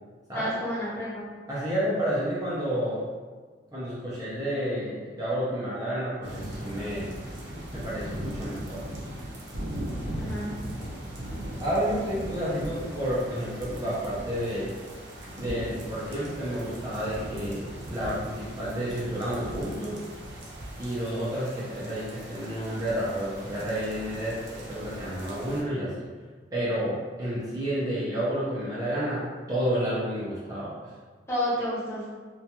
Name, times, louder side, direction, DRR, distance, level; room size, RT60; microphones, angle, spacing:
voice 1, 0.3-1.3 10.2-10.5 31.3-32.1, equal, 15° left, -8 dB, 0.7 m, -30 dB
voice 2, 1.5-3.0 3.7-7.1 7.7-9.0 11.6-14.7 15.4-20.0 20.8-26.1 26.5-30.7, equal, 20° right, -9 dB, 0.5 m, -30 dB
sound 1, 6.2-25.6, right 1 dB, 75° right, 0.6 m, -39 dB
2.4 x 2.2 x 2.8 m, 1.5 s
head